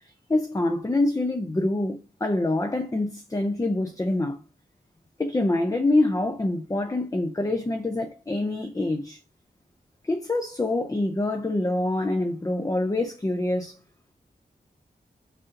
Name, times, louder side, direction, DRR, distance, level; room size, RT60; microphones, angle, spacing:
voice 1, 0.3-4.4 5.2-9.2 10.0-13.8, left 2 dB, 20° left, 0.5 m, -25 dB
4.1 x 3.8 x 2.5 m
wide cardioid pair, 80°, 17 cm